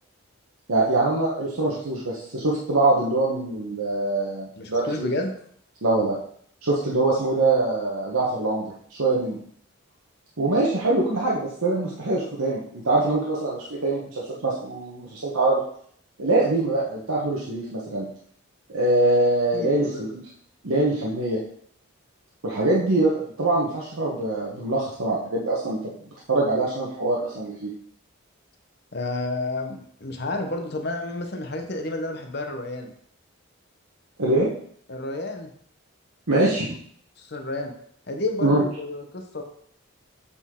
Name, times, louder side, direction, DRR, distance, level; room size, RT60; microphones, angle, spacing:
voice 1, 0.7-5.1 5.8-6.2 6.6-9.4 10.4-15.6 16.2-18.1 18.7-20.1 20.6-21.4 22.4-25.9 26.3-27.7 34.2-34.5 36.3-36.7 38.4-38.6, right 2 dB, 85° right, -5 dB, 1.1 m, -23 dB
voice 2, 4.6-5.3 19.5-20.1 28.9-32.9 34.9-35.5 37.2-37.7 38.1-39.4, left 2 dB, 50° left, 4 dB, 0.9 m, -30 dB
7.9 x 4.2 x 3.7 m, 0.63 s
head